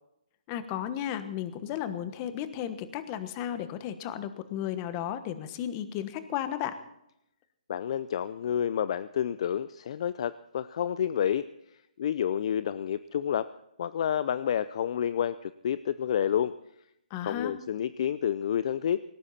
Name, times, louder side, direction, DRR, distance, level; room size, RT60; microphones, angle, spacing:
voice 1, 0.5-6.8 17.1-17.5, left 10 dB, 25° left, 12 dB, 1.2 m, -34 dB
voice 2, 7.7-11.5 12.0-13.5 13.8-16.5 17.2-19.0, left 9 dB, 45° left, 15 dB, 0.5 m, -29 dB
18.5 x 17.5 x 4.2 m, 0.80 s
hypercardioid pair, 160°, 4 cm